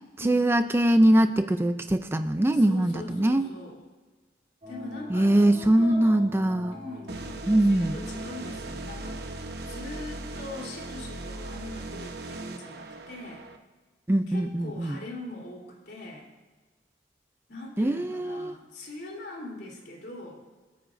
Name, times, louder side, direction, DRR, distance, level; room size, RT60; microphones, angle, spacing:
voice 1, 0.2-3.4 5.1-6.8 7.5-8.0 14.1-15.0 17.8-18.5, right 1 dB, 15° right, 9 dB, 0.4 m, -22 dB
voice 2, 2.5-3.8 4.7-6.2 6.7-13.5 14.3-16.3 17.5-20.4, left 2 dB, 65° left, -2 dB, 3.4 m, -42 dB
sound 1, 4.6-11.1, equal, 40° right, 3.2 m, -46 dB
sound 2, 7.1-13.6, right 2 dB, 60° right, 0.9 m, -38 dB
27.0 x 9.4 x 2.6 m, 1.3 s
head